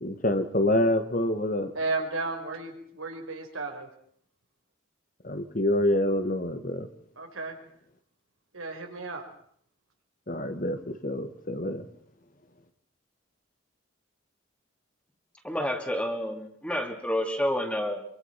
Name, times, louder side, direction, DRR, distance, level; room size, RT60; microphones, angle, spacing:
voice 1, 0.0-1.7 5.2-6.9 10.3-11.9, left 1 dB, 40° left, 9 dB, 1.8 m, -27 dB
voice 2, 1.7-3.9 7.2-7.6 8.5-9.2, right 3 dB, 85° right, 3 dB, 4.9 m, -33 dB
voice 3, 15.4-18.0, equal, 5° left, 4 dB, 2.8 m, -29 dB
26.0 x 24.5 x 5.9 m, 0.64 s
head